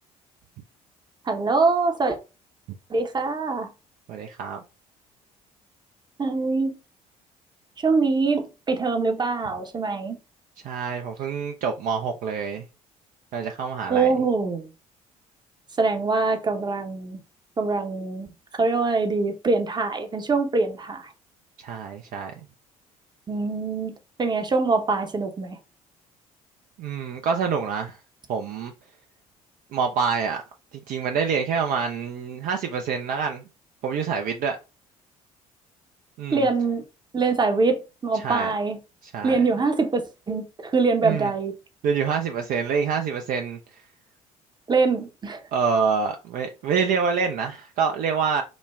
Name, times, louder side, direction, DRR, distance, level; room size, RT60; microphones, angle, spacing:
voice 1, 1.3-2.2 2.9-3.7 6.2-6.7 7.8-10.2 13.9-14.7 15.8-17.2 17.6-18.3 18.6-21.1 23.3-25.6 36.3-36.8 37.1-38.8 39.2-41.5 44.7-45.4, right 4 dB, 25° right, 0.8 m, -24 dB
voice 2, 4.1-4.6 10.6-12.6 13.3-14.1 21.6-22.3 26.8-28.0 28.3-28.7 29.7-30.4 30.9-33.4 33.8-34.6 36.2-36.5 38.2-38.5 39.0-39.4 41.0-41.3 41.8-43.6 45.5-48.4, right 6 dB, 50° right, 0.5 m, -26 dB
5.0 x 2.1 x 2.3 m
figure-of-eight pair, 50°, 19 cm